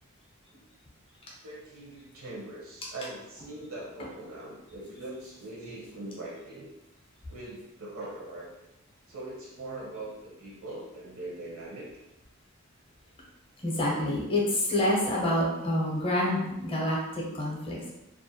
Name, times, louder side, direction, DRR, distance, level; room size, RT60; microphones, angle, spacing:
voice 1, 1.4-6.7 7.3-8.5 9.1-11.9, right 2 dB, 70° right, -3 dB, 0.6 m, -41 dB
voice 2, 13.6-17.9, left 1 dB, 25° left, -3 dB, 0.5 m, -27 dB
2.4 x 2.1 x 2.7 m, 0.92 s
head